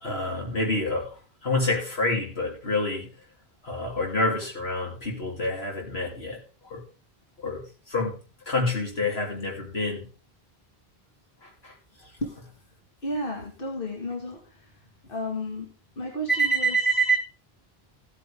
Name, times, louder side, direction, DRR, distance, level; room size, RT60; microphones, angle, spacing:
voice 1, 0.0-1.2 1.4-3.1 3.6-6.4 6.7-6.8 7.4-8.2 8.5-10.1 11.4-11.7 16.3-17.2, equal, 80° left, 3.4 m, -27 dB
voice 2, 13.0-14.8 15.1-16.8, left 1 dB, 60° left, 2.1 m, -33 dB
15.0 x 8.7 x 3.5 m
omnidirectional pair, 1.0 m